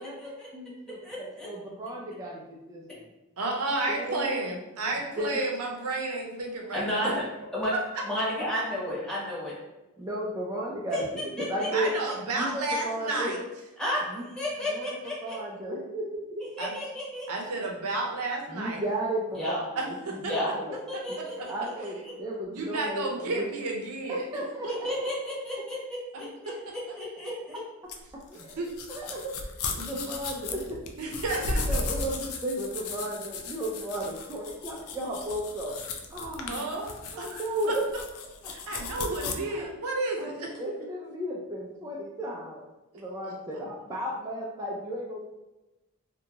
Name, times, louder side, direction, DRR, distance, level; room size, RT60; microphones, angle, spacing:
voice 1, 0.0-3.1 3.9-4.4 5.2-5.4 7.0-7.2 10.0-11.1 11.4-11.9 12.3-13.3 14.1-14.3 14.7-16.4 18.5-20.8 21.5-23.5 24.1-24.9 28.1-30.8 31.4-35.7 36.1-36.6 37.1-37.8 39.2-39.7 40.2-42.6 42.9-45.2, right 1 dB, 15° right, -3 dB, 0.3 m, -34 dB
voice 2, 1.0-1.5 6.7-7.2 7.5-7.7 8.0-9.5 10.9-11.0 11.4-11.7 13.8-14.0 14.4-15.4 16.6-17.3 19.4-19.6 20.2-21.5 24.7-27.5 38.4-38.5, left 1 dB, 5° left, -8 dB, 0.9 m, -32 dB
voice 3, 3.4-7.1 7.7-7.8 8.1-8.2 11.7-13.4 16.6-16.7 17.3-18.8 19.8-20.3 21.2-21.5 22.5-24.2 24.6-24.9 26.1-26.5 28.6-28.7 29.8-30.0 31.0-31.6 36.5-36.9 37.2-37.4 38.5-40.5, right 2 dB, 75° right, 0 dB, 0.6 m, -32 dB
sound 1, 27.9-39.3, left 3 dB, 65° left, 0.4 m, -35 dB
2.7 x 2.2 x 2.8 m, 1.0 s
head